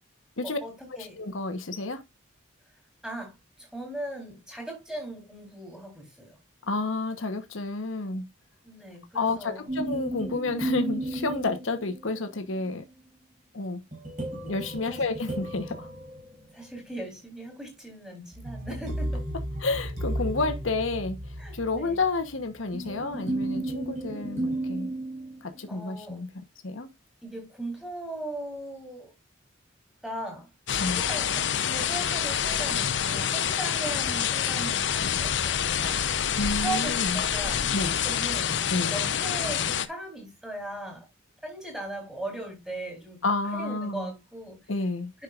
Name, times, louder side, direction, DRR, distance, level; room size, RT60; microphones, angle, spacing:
voice 1, 0.4-1.2 3.0-6.4 8.6-9.7 16.5-19.3 21.4-22.0 25.7-26.2 27.2-29.1 30.0-36.0 36.6-41.1 41.4-43.2 43.5-44.6 45.1-45.2, right 2 dB, 5° right, 3.6 m, -38 dB
voice 2, 1.1-2.0 6.7-8.3 9.1-12.8 13.5-13.8 14.4-15.9 19.6-21.2 21.5-24.9 25.4-26.3 26.6-26.9 30.8-31.0 36.4-37.2 37.7-38.0 38.7-39.0 43.2-44.1 44.7-45.1, left 3 dB, 85° left, 1.1 m, -30 dB
sound 1, 9.7-12.3 13.9-16.9 18.3-25.7, right 1 dB, 40° right, 4.5 m, -34 dB
sound 2, 30.7-39.9, left 8 dB, 65° left, 0.7 m, -27 dB
9.8 x 6.5 x 2.5 m
head